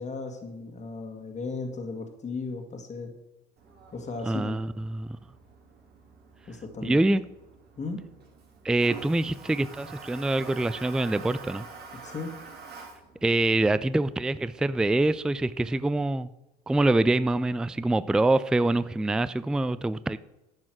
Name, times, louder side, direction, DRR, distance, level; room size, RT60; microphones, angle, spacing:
voice 1, 0.0-3.1 3.9-4.6 6.5-7.0 7.8-8.0 12.0-12.3, left 4 dB, 35° left, 3 dB, 1.8 m, -36 dB
Toilet flush, 3.6-15.8, right 4 dB, 50° right, 2.7 m, -48 dB
voice 2, 4.2-5.2 6.8-7.2 8.6-11.6 13.2-16.3 16.7-20.2, right 2 dB, 5° right, 16 dB, 0.3 m, -25 dB
10.5 x 6.2 x 6.2 m, 0.97 s
hypercardioid pair, 75°, 21 cm